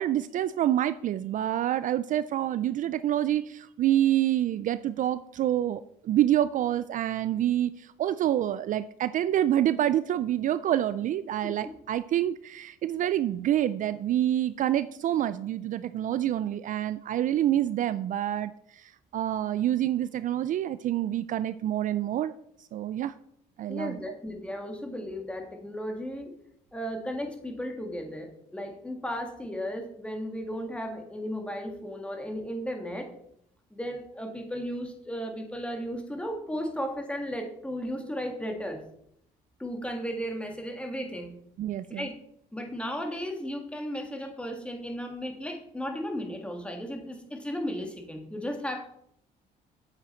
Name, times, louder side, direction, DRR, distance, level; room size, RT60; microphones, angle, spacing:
voice 1, 0.0-22.3 22.7-23.1 23.6-24.2 41.6-42.1, right 12 dB, 50° right, 14 dB, 0.4 m, -27 dB
voice 2, 23.7-26.3 26.7-33.1 33.7-38.8 39.6-41.4 41.9-42.1 42.5-48.9, equal, 5° left, 3 dB, 1.7 m, -35 dB
8.6 x 7.7 x 4.4 m, 0.73 s
cardioid pair, 110°, 17 cm